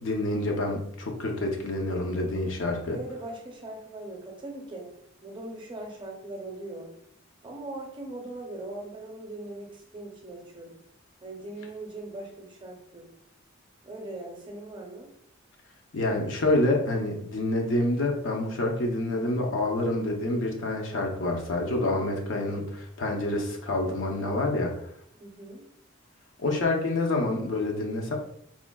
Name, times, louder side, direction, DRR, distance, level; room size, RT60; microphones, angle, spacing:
voice 1, 0.0-3.0 15.9-24.7 26.4-28.2, left 2 dB, 75° left, 2 dB, 0.6 m, -27 dB
voice 2, 2.9-4.9 5.2-6.9 7.4-10.8 11.2-13.1 13.8-15.1 25.1-25.6, right 2 dB, 25° right, 0 dB, 0.6 m, -40 dB
3.6 x 2.1 x 2.2 m, 0.69 s
head